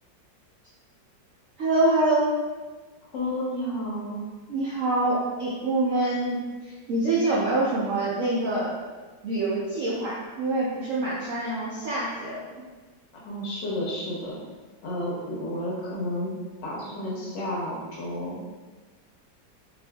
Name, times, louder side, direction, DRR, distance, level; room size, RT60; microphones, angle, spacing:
voice 1, 1.6-2.3 4.5-8.8 9.2-12.5, right 2 dB, 75° right, -7 dB, 0.7 m, -25 dB
voice 2, 3.1-4.2 13.1-14.4 14.8-16.3 16.6-18.4, left 1 dB, 75° left, -4 dB, 1.5 m, -31 dB
4.5 x 2.5 x 2.2 m, 1.3 s
omnidirectional pair, 2.0 m